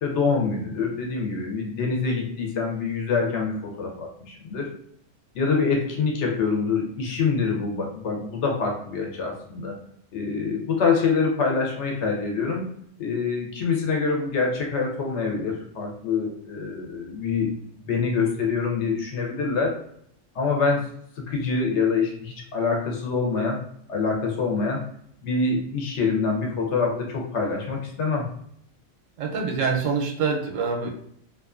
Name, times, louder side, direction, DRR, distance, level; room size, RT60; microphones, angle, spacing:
voice 1, 0.0-4.7 5.3-9.8 10.1-12.6 13.0-17.5 17.8-19.7 20.3-20.9 21.2-23.6 23.9-24.8 25.2-28.3, left 4 dB, 70° left, 0 dB, 0.9 m, -25 dB
voice 2, 29.2-30.9, right 5 dB, 90° right, 1 dB, 1.0 m, -25 dB
2.5 x 2.4 x 2.4 m, 0.66 s
omnidirectional pair, 1.3 m